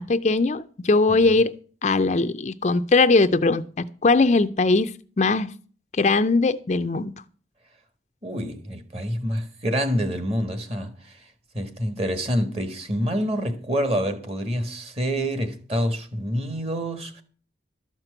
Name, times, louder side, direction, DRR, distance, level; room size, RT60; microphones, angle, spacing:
voice 1, 0.0-1.5 1.8-5.5 5.9-7.1, left 3 dB, 40° left, 0.4 m, -20 dB
voice 2, 8.2-11.2 11.5-17.2, equal, 35° right, 1.4 m, -27 dB
12.5 x 5.9 x 7.9 m
head